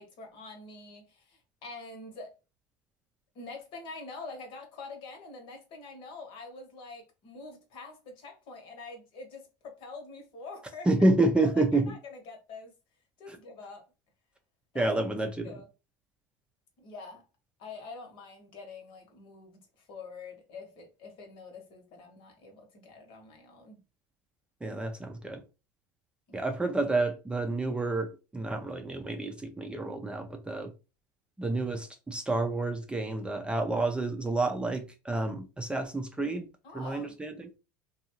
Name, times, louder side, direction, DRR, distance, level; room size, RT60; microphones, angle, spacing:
voice 1, 0.0-2.3 3.3-10.9 11.4-12.7 13.2-13.9 14.7-14.9 15.4-15.7 16.8-17.2 17.6-23.8 26.3-26.4 36.6-37.2, left 3 dB, 60° left, 1.2 m, -45 dB
voice 2, 10.9-11.8 14.7-15.5 24.6-25.4 26.3-30.7 31.4-36.5 36.7-37.5, right 2 dB, 10° right, 0.5 m, -29 dB
2.5 x 2.4 x 2.9 m
hypercardioid pair, 90°, 10 cm